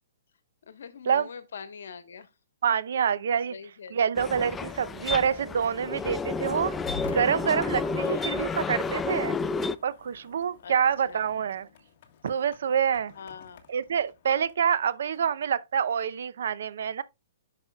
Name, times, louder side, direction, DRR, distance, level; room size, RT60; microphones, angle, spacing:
voice 1, 0.7-2.3 3.5-4.0 7.9-8.6 10.6-10.7 11.1-11.3 13.2-13.6, left 6 dB, 75° left, 1.3 m, -43 dB
voice 2, 2.6-3.5 3.9-6.7 7.1-9.4 9.8-11.7 12.2-13.1 13.7-17.0, right 7 dB, 70° right, 0.7 m, -26 dB
sound 1, 4.1-9.7, left 4 dB, 10° left, 0.3 m, -31 dB
sound 2, 4.2-15.5, left 7 dB, 45° left, 1.5 m, -48 dB
9.7 x 6.1 x 2.3 m
hypercardioid pair, 150°, 0 cm